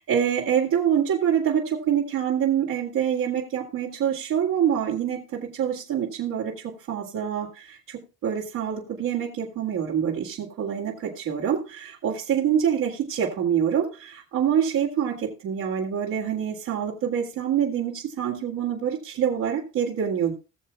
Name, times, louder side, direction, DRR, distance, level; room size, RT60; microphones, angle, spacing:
voice 1, 0.0-20.3, right 8 dB, 85° right, -3 dB, 2.2 m, -26 dB
20.5 x 6.8 x 2.2 m, 0.30 s
cardioid pair, 90°, 30 cm